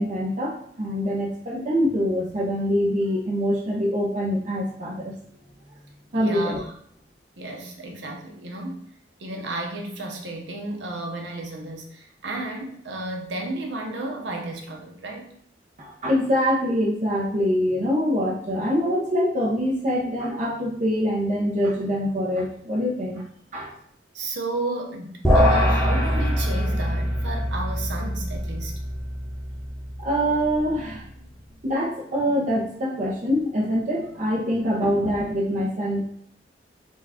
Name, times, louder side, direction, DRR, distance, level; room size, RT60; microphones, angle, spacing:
voice 1, 0.0-5.1 6.1-6.6 15.8-23.2 23.5-23.7 30.0-31.0 31.6-36.0, equal, 45° right, -3 dB, 0.7 m, -24 dB
voice 2, 6.1-6.7 7.4-8.9 9.2-15.3 24.1-28.7, right 2 dB, 75° right, 1 dB, 0.8 m, -33 dB
sound 1, 25.2-30.8, equal, ahead, 0.9 m, -23 dB
4.5 x 2.4 x 4.2 m, 0.65 s
head